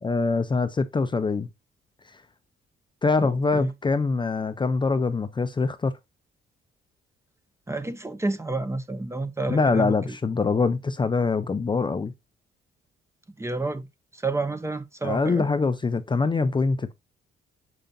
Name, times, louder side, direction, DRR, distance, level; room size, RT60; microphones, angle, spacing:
voice 1, 0.0-1.5 3.0-5.9 9.5-12.1 15.0-16.9, left 4 dB, 25° left, 0.6 m, -24 dB
voice 2, 3.2-3.7 7.7-10.2 13.4-13.9 14.1-15.5, right 2 dB, 15° right, 0.8 m, -30 dB
6.8 x 5.1 x 2.7 m
cardioid pair, 90°, 20 cm